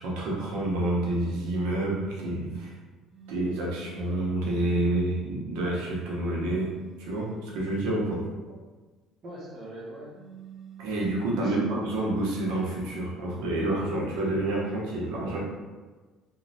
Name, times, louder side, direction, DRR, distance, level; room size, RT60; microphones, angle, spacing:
voice 1, 0.0-2.7 3.3-6.7 7.0-8.2 10.8-15.4, right 1 dB, 90° right, -4 dB, 0.8 m, -28 dB
sound 1, 3.1-4.4 6.6-8.0 10.1-11.7 14.1-14.8, right 6 dB, 10° right, 0.8 m, -48 dB
voice 2, 9.2-10.2 11.4-11.9, right 1 dB, 55° right, -5 dB, 0.9 m, -41 dB
3.1 x 2.3 x 2.7 m, 1.3 s
cardioid pair, 95°, 0 cm